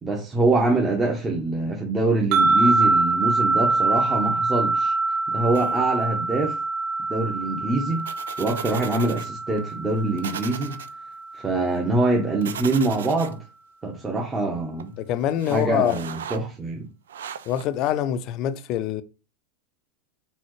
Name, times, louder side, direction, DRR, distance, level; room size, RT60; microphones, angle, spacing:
voice 1, 0.0-4.9 5.3-6.6 7.1-8.1 8.4-10.8 11.3-13.4 13.8-14.9 15.5-16.8, right 2 dB, 20° right, 1.0 m, -24 dB
sound 1, 2.3-11.6, right 3 dB, 55° right, 1.0 m, -24 dB
sound 2, 5.5-6.0 8.0-9.3 9.6-9.7 10.2-10.9 12.4-13.3 14.8-14.9 15.3-16.4 17.1-17.9, right 8 dB, 85° right, 0.4 m, -37 dB
voice 2, 15.0-16.1 17.5-19.0, left 11 dB, 45° left, 0.5 m, -25 dB
4.2 x 3.9 x 3.1 m
hypercardioid pair, 105°, 0 cm